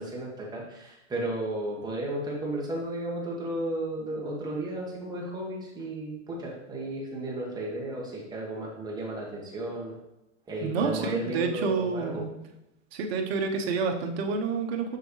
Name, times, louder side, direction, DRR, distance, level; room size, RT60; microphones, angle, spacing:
voice 1, 0.0-10.0 10.5-12.2, right 1 dB, 10° right, -3 dB, 1.6 m, -34 dB
voice 2, 10.6-12.3 12.9-15.0, right 4 dB, 55° right, 3 dB, 1.1 m, -29 dB
6.7 x 6.2 x 3.2 m, 0.90 s
hypercardioid pair, 135°, 37 cm